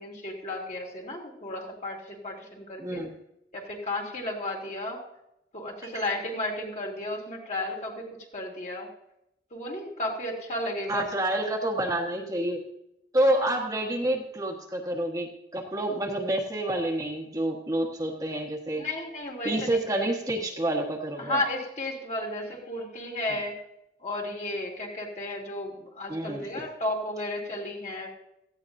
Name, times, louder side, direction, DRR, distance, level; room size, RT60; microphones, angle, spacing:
voice 1, 0.0-3.0 3.5-5.0 5.5-8.1 8.3-8.9 9.5-11.0 13.4-13.5 18.8-20.1 21.2-23.5 24.0-28.2, left 1 dB, 40° left, -1 dB, 2.9 m, -33 dB
voice 2, 2.8-3.1 5.8-6.0 10.9-12.6 13.1-18.8 19.4-21.4 26.1-26.5, right 1 dB, 20° right, 1 dB, 1.4 m, -28 dB
17.5 x 15.0 x 2.7 m, 0.83 s
head